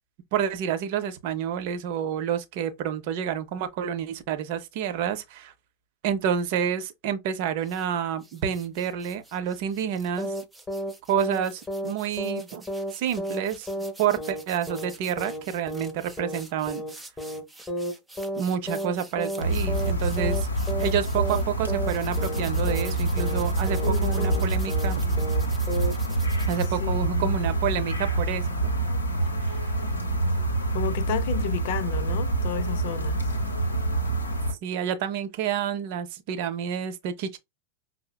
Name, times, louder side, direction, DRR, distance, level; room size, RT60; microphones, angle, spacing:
voice 1, 0.3-5.5 6.0-10.3 11.1-12.7 12.9-13.7 14.0-16.8 18.4-20.5 20.8-25.3 26.5-28.7 29.4-29.7 34.6-37.4, right 8 dB, 50° right, 0.6 m, -29 dB
sound 1, 7.6-7.9 8.2-21.4 21.9-26.7, right 2 dB, 5° right, 0.5 m, -48 dB
sound 2, 10.2-10.4 10.7-10.9 11.2-11.4 11.7-11.9 12.2-12.4 12.7-12.9 13.2-13.4 13.7-13.9 14.2-14.4 14.7-14.9 15.2-15.4 15.7-15.9 16.2-16.4 16.7-16.9 17.2-17.4 17.7-17.9 18.2-18.4 18.7-18.9 19.2-19.4 19.7-19.9 20.2-20.4 20.7-20.9 21.2-21.4 21.7-21.9 22.2-22.4 22.7-22.9 23.2-23.4 23.7-23.9 24.2-24.4 24.7-24.9 25.2-25.4 25.7-25.9, equal, 15° left, 0.9 m, -32 dB
sound 3, 19.4-34.5, right 2 dB, 80° left, 0.8 m, -26 dB
voice 2, 23.8-24.6 26.8-27.4 30.7-33.3, left 10 dB, 50° left, 0.4 m, -32 dB
5.4 x 2.0 x 2.2 m
figure-of-eight pair, 90°, 0 cm